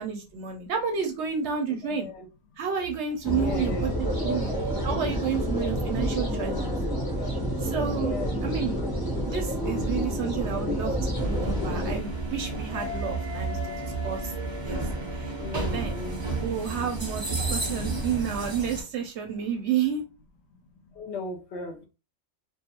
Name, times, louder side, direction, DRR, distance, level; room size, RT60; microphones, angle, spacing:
voice 1, 0.0-2.1 2.6-3.9 4.2-4.5 4.8-6.7 7.6-8.1 8.4-8.8 9.3-14.3 14.6-14.8 15.1-16.0 16.4-20.0, right 7 dB, 65° right, 0.8 m, -31 dB
voice 2, 1.7-2.3 3.3-4.0 7.9-8.6 15.4-16.2 20.9-21.9, left 3 dB, 65° left, 0.8 m, -37 dB
sound 1, 3.2-12.0, equal, 30° left, 0.4 m, -28 dB
sound 2, 11.1-18.8, right 2 dB, 25° right, 0.7 m, -32 dB
2.3 x 2.3 x 2.8 m
omnidirectional pair, 1.4 m